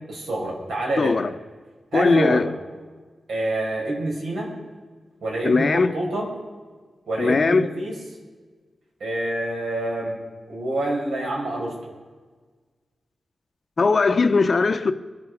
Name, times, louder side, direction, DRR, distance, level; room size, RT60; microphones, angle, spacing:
voice 1, 0.1-1.2 1.9-2.4 3.3-4.5 5.2-6.3 7.1-7.9 9.0-10.2 10.5-11.7, right 1 dB, 85° right, 5.4 m, -26 dB
voice 2, 1.0-1.3 1.9-2.5 5.4-5.9 7.2-7.7 13.8-14.9, left 4 dB, 35° left, 0.6 m, -19 dB
24.0 x 11.0 x 4.9 m
wide cardioid pair, 165°, 0 cm